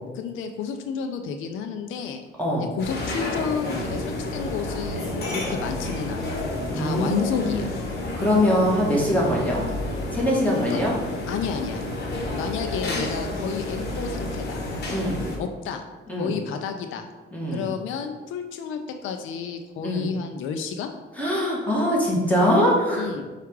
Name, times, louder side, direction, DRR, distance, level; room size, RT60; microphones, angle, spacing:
voice 1, 0.2-2.2 2.6-6.4 6.7-7.7 10.5-10.8 11.3-11.9 12.3-14.6 15.4-15.8 16.2-17.1 17.5-20.9 23.0-23.2, left 6 dB, 80° left, 6 dB, 0.4 m, -31 dB
sound 1, 2.8-15.4, left 1 dB, 55° left, 1.2 m, -30 dB
voice 2, 6.7-7.7 8.2-9.7 10.1-10.9 14.9-15.2 16.1-16.3 17.3-17.7 19.8-20.1 21.2-23.1, left 1 dB, 5° left, -4 dB, 1.4 m, -22 dB
4.5 x 2.4 x 4.6 m, 1.2 s
cardioid pair, 90°, 20 cm